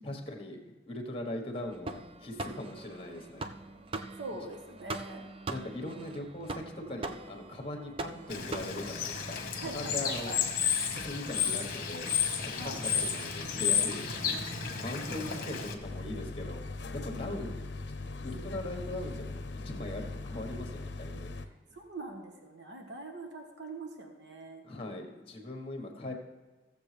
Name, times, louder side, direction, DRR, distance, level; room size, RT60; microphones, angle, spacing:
voice 1, 0.0-3.5 5.5-10.3 10.9-12.1 12.4-14.4 14.8-16.6 16.9-17.6 18.2-21.3 24.6-26.1, left 1 dB, 30° left, 3 dB, 1.3 m, -40 dB
sound 1, 1.6-9.4, right 2 dB, 30° right, 0.4 m, -42 dB
voice 2, 4.2-5.2 5.9-6.0 9.6-10.4 11.4-11.6 12.6-12.8 15.1-15.5 17.1-17.5 21.7-24.6 25.8-26.1, right 2 dB, 80° right, 3 dB, 1.4 m, -43 dB
Bird / Water, 8.3-15.7, left 7 dB, 50° left, 1.1 m, -32 dB
sound 2, 15.8-21.5, left 3 dB, 75° left, 0.7 m, -40 dB
15.5 x 7.2 x 3.4 m, 1.3 s
head